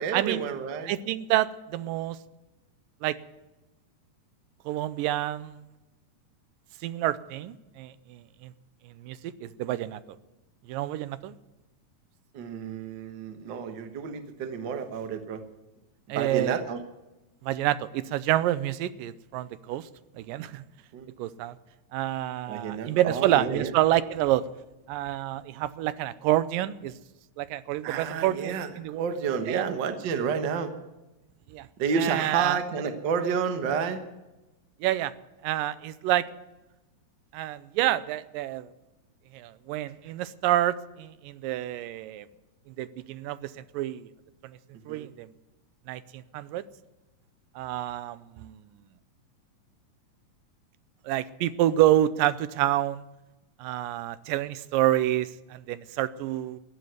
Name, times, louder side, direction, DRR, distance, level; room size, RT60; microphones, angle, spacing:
voice 1, 0.0-0.9 12.3-15.4 16.1-16.8 20.9-21.1 22.5-23.7 27.8-30.7 31.8-34.0 44.9-45.1, right 6 dB, 60° right, 8 dB, 1.2 m, -30 dB
voice 2, 0.8-2.2 3.0-3.2 4.7-5.6 6.8-8.5 9.0-10.0 10.7-11.3 16.1-16.6 17.4-19.9 20.2-20.6 21.2-21.6 21.9-24.5 24.9-27.0 27.4-29.1 29.5-29.7 31.5-31.7 32.0-32.6 34.8-35.1 35.4-36.3 37.3-38.7 39.3-42.3 42.8-44.1 44.9-45.3 45.9-46.6 47.6-48.6 51.1-53.0 53.6-56.6, right 13 dB, 85° right, 15 dB, 2.3 m, -28 dB
15.0 x 9.6 x 9.2 m, 1.0 s
omnidirectional pair, 3.9 m